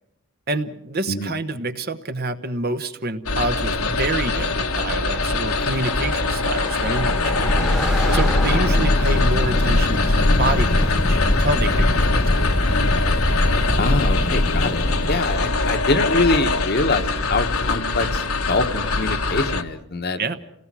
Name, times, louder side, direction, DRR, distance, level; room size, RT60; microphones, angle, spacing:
voice 1, 0.5-7.6 7.9-12.4 20.2-20.4, right 2 dB, 45° right, 9 dB, 1.1 m, -27 dB
sound 1, 3.3-19.6, left 3 dB, 70° left, 1.4 m, -23 dB
Car passing by, 4.6-15.8, equal, ahead, 1.3 m, -35 dB
sound 2, 6.7-16.0, left 1 dB, 30° left, 0.7 m, -22 dB
voice 2, 8.5-8.8 13.8-20.2, left 2 dB, 45° left, 7 dB, 1.2 m, -24 dB
28.5 x 18.0 x 6.2 m, 0.86 s
head